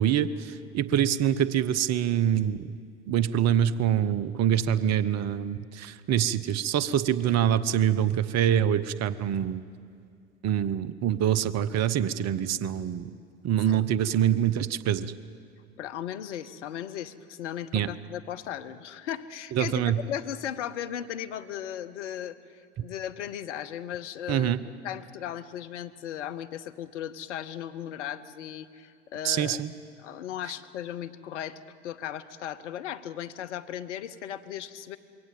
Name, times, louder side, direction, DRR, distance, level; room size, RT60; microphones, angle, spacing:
voice 1, 0.0-2.7 3.1-9.6 10.4-13.1 13.4-15.1 17.7-17.9 19.5-20.0 24.3-24.6 29.2-29.7, right 10 dB, 45° right, 16 dB, 0.9 m, -25 dB
voice 2, 15.8-24.6 24.8-29.6 30.0-35.0, left 10 dB, 75° left, 12 dB, 1.0 m, -36 dB
22.5 x 17.0 x 9.1 m, 2.4 s
hypercardioid pair, 70°, 36 cm